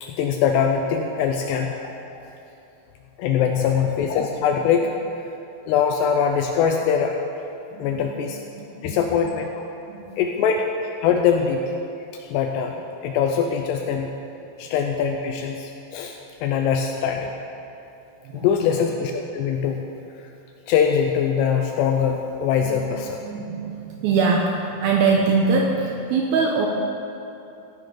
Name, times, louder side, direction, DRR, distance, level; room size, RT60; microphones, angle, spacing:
voice 1, 0.0-2.2 3.2-4.9 5.7-7.1 7.8-8.4 8.8-9.6 10.2-10.6 11.0-11.7 12.1-12.8 13.0-14.1 14.6-17.3 18.3-19.8 20.2-20.3 20.7-23.2, left 7 dB, 80° left, 3 dB, 2.6 m, -22 dB
voice 2, 7.7-8.2 8.6-9.2 9.9-10.1 14.6-14.7 18.2-18.8 22.1-22.2 22.6-22.9 23.2-26.7, right 4 dB, 75° right, 0 dB, 2.3 m, -23 dB
15.5 x 10.5 x 3.9 m, 2.8 s
omnidirectional pair, 5.1 m